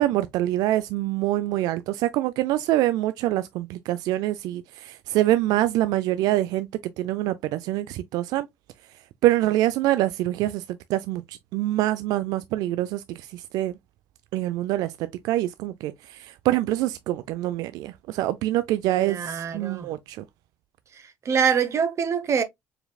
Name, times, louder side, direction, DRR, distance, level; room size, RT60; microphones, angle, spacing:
voice 1, 0.0-6.7 7.0-8.5 9.2-13.7 14.3-20.2, right 15 dB, 80° right, 0.3 m, -25 dB
voice 2, 19.0-19.9 20.9-22.4, right 7 dB, 50° right, 0.8 m, -25 dB
4.8 x 3.3 x 2.2 m
supercardioid pair, 80°, 7 cm